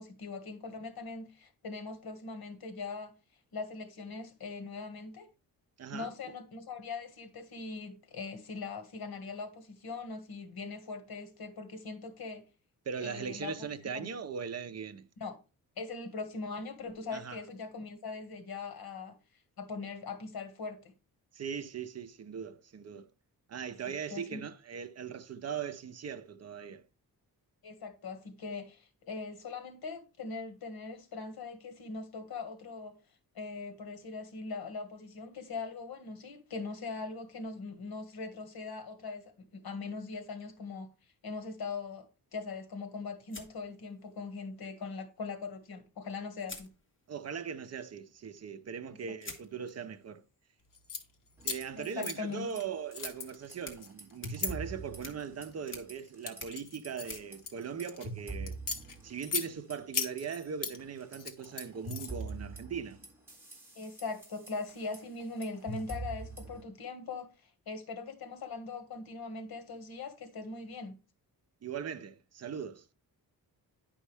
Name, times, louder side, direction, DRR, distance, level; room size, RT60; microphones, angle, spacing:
voice 1, 0.0-3.1 3.5-5.3 5.9-12.4 13.0-13.5 13.9-14.2 15.2-15.4 15.8-19.1 19.6-20.9 24.1-24.4 27.6-32.9 33.3-40.9 41.2-42.1 42.3-46.7 48.9-49.2 51.7-52.5 63.7-71.0, left 4 dB, 75° left, 1.7 m, -41 dB
voice 2, 5.8-6.1 12.9-15.1 17.1-17.4 21.3-23.1 23.5-26.8 47.1-50.2 51.4-58.6 59.0-63.0 71.6-72.8, right 7 dB, 45° right, 0.6 m, -40 dB
sound 1, 43.3-44.4 45.8-45.9 46.4-47.4 49.2-58.4, left 3 dB, 35° left, 1.7 m, -52 dB
sound 2, 50.7-51.0 51.4-52.6 52.9-54.5 55.2-55.5 56.0-58.1 58.5-59.5 59.9-60.8 61.1-62.3, left 6 dB, 60° left, 1.2 m, -37 dB
sound 3, 51.4-52.1 52.4-52.6 53.0-55.6 55.9-56.4 56.8-60.2 60.6-66.6, right 3 dB, 5° right, 3.0 m, -44 dB
10.0 x 5.4 x 3.4 m
wide cardioid pair, 175°, 37 cm